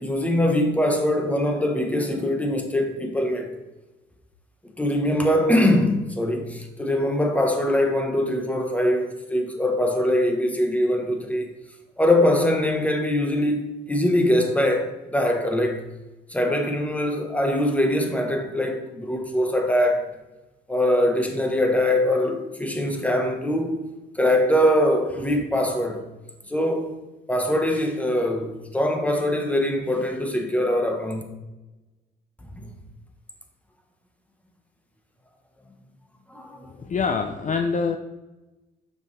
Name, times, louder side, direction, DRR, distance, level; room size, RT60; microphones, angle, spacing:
voice 1, 0.0-3.5 4.8-11.5 12.0-15.9 16.3-20.1 20.7-23.9 24.1-26.0 26.5-26.9 27.3-31.2 32.5-32.7 36.3-36.7, left 1 dB, 5° left, 1.2 m, -22 dB
voice 2, 36.7-38.0, left 5 dB, 40° left, 0.6 m, -25 dB
6.9 x 6.0 x 3.3 m
cardioid pair, 90°, 20 cm